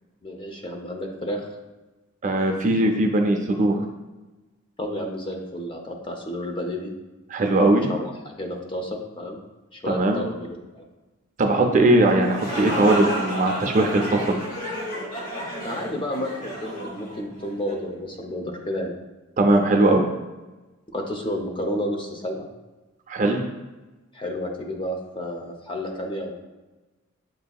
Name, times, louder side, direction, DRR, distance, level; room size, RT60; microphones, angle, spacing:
voice 1, 0.2-1.5 4.8-6.9 7.9-9.4 9.7-10.8 15.6-18.9 20.9-22.5 24.1-26.3, left 1 dB, 25° left, 1 dB, 0.6 m, -31 dB
voice 2, 2.2-3.8 7.3-7.9 9.9-10.2 11.4-14.4 19.4-20.1 23.1-23.4, right 2 dB, 35° right, 3 dB, 0.4 m, -20 dB
sound 1, 12.1-17.8, equal, 40° left, 0.9 m, -32 dB
7.6 x 2.7 x 2.3 m, 1.1 s
head